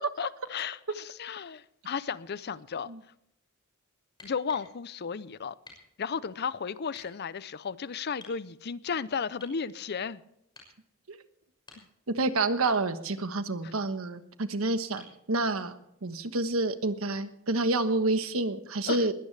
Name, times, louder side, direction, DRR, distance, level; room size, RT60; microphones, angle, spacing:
voice 1, 0.0-2.9 4.2-5.6 6.0-10.2 13.6-13.7 18.9-19.1, left 6 dB, 50° left, 17 dB, 0.6 m, -34 dB
sound 1, 4.2-4.7 5.6-5.9 6.9-7.1 8.2-8.4 9.4-9.6 10.5-10.8 11.5-12.1 12.6-12.9 15.0-15.2 17.0-17.1, left 3 dB, 20° left, 6.0 m, -51 dB
voice 2, 12.1-15.7 16.0-19.1, right 2 dB, 80° right, 10 dB, 1.2 m, -28 dB
21.0 x 16.5 x 3.4 m, 0.77 s
head